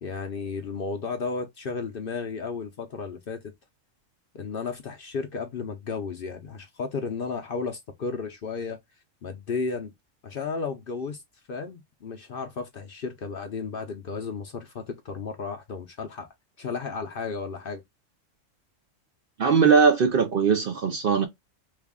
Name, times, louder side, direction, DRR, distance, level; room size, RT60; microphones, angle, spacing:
voice 1, 0.0-3.4 4.3-8.8 9.2-9.9 10.2-11.2 11.5-16.3 16.6-17.8, left 4 dB, 55° left, 0.7 m, -33 dB
voice 2, 19.4-21.3, right 5 dB, 55° right, 0.7 m, -20 dB
3.4 x 2.3 x 3.6 m
omnidirectional pair, 1.4 m